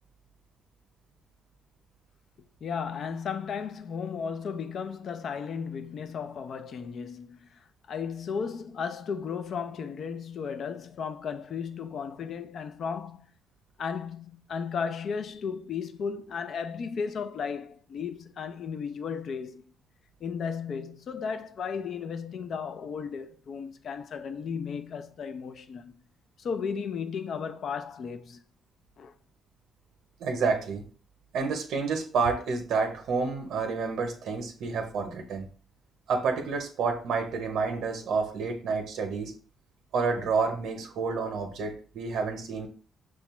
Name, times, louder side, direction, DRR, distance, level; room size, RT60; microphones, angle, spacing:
voice 1, 2.6-7.5 7.9-13.3 13.8-19.6 20.2-26.0 26.4-28.4 29.0-29.1, left 6 dB, 60° left, 0.4 m, -35 dB
voice 2, 30.2-30.9 31.3-35.5 36.1-39.3 39.9-42.7, right 4 dB, 75° right, 0.7 m, -29 dB
6.0 x 2.3 x 2.9 m
cardioid pair, 90°, 0 cm